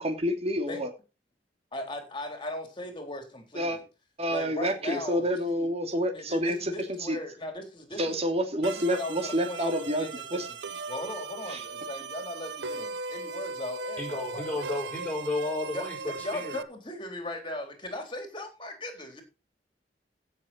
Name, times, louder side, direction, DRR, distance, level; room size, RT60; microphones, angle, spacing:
voice 1, 0.0-0.9 3.5-3.8 4.2-7.2 8.0-10.5 11.5-11.6, equal, 35° right, 2.6 m, -29 dB
voice 2, 1.7-3.8 4.3-5.7 6.1-8.2 8.6-10.4 10.7-14.6 15.7-19.2, left 1 dB, 30° left, 3.8 m, -38 dB
sound 1, 8.6-16.6, right 4 dB, 75° right, 0.8 m, -38 dB
voice 3, 14.0-16.6, left 2 dB, 10° left, 6.7 m, -33 dB
16.0 x 6.8 x 4.4 m
head